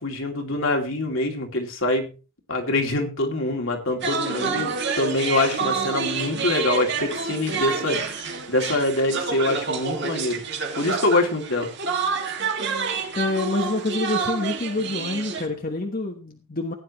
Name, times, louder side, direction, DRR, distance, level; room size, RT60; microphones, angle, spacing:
voice 1, 0.0-2.1 2.5-10.4 10.8-11.7, left 2 dB, 65° left, 2 dB, 2.8 m, -25 dB
sound 1, 4.0-15.5, right 5 dB, 50° right, 2.1 m, -28 dB
voice 2, 13.1-16.7, left 2 dB, 40° left, 3 dB, 1.2 m, -27 dB
16.5 x 10.0 x 3.1 m, 0.33 s
head